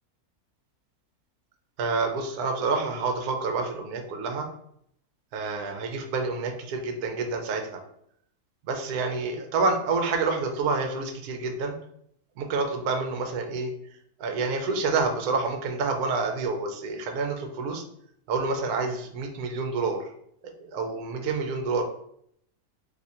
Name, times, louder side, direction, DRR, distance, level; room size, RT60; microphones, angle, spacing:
voice 1, 1.8-4.5 5.3-7.8 8.7-11.8 12.4-13.7 14.2-17.8 18.3-20.0 20.4-21.8, right 4 dB, 80° right, 4 dB, 1.1 m, -28 dB
2.8 x 2.5 x 4.2 m, 0.69 s
omnidirectional pair, 1.6 m